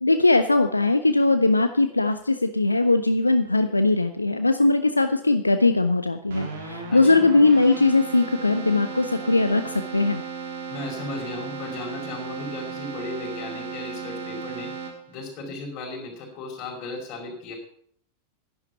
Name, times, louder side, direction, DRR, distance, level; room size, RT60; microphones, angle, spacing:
voice 1, 0.0-10.2, left 2 dB, 80° left, 10 dB, 0.6 m, -20 dB
Keyboard (musical), 6.3-15.3, right 5 dB, 60° right, 3.3 m, -35 dB
voice 2, 6.9-7.2 10.7-14.7 15.1-17.5, left 3 dB, 35° left, 0 dB, 5.0 m, -36 dB
11.0 x 10.5 x 5.8 m, 0.63 s
figure-of-eight pair, 90°, 0 cm